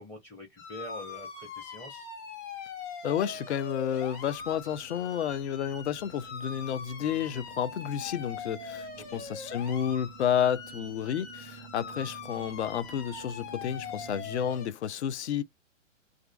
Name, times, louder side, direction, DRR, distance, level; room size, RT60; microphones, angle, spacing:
voice 1, 0.0-2.1 9.0-9.2, left 1 dB, 5° left, 0.6 m, -45 dB
sound 1, 0.6-14.7, left 5 dB, 30° left, 0.9 m, -42 dB
voice 2, 3.0-15.4, left 9 dB, 60° left, 0.5 m, -31 dB
sound 2, 3.8-14.6, right 8 dB, 40° right, 0.4 m, -51 dB
2.4 x 2.4 x 2.2 m
figure-of-eight pair, 120°, 38 cm